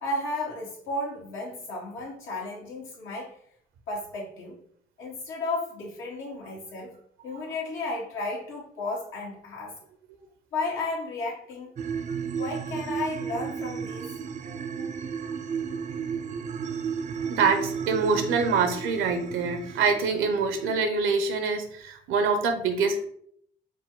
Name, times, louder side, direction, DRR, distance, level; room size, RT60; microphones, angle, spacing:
voice 1, 0.0-3.4 3.9-4.6 5.0-7.0 7.2-9.8 10.5-11.8 12.3-14.1, left 2 dB, 90° left, -3 dB, 1.5 m, -33 dB
sound 1, 11.8-20.7, right 6 dB, 40° right, 0.4 m, -33 dB
voice 2, 17.2-23.1, right 4 dB, 85° right, 7 dB, 0.7 m, -25 dB
4.9 x 2.1 x 3.7 m, 0.65 s
cardioid pair, 90°, 20 cm